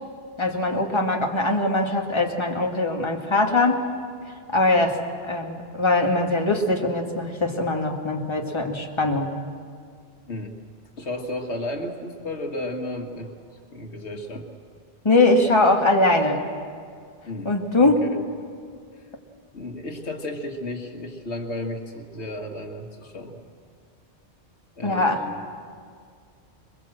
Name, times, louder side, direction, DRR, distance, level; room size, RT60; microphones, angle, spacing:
voice 1, 0.4-3.8 4.5-5.0 5.2-9.3 15.0-16.4 17.5-18.0 24.8-25.2, left 2 dB, 25° left, 1 dB, 1.8 m, -21 dB
voice 2, 10.3-10.6 11.0-13.3 13.7-14.5 17.2-18.2 19.5-23.4 24.8-25.4, left 1 dB, 80° left, 4 dB, 1.9 m, -33 dB
23.0 x 22.5 x 7.7 m, 2.2 s
omnidirectional pair, 1.1 m